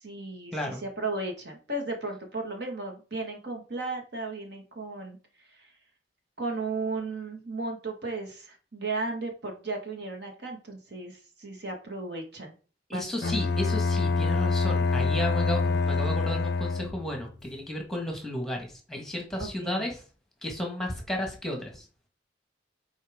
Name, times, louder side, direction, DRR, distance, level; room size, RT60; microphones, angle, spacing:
voice 1, 0.0-5.2 5.6-5.7 6.4-12.5 12.9-13.3 19.4-19.9, right 3 dB, 60° right, 3 dB, 1.7 m, -35 dB
voice 2, 12.9-20.0 20.4-21.8, left 1 dB, ahead, 1 dB, 1.5 m, -33 dB
Bowed string instrument, 13.2-17.2, left 4 dB, 60° left, 0.4 m, -26 dB
8.7 x 4.3 x 3.6 m, 0.37 s
head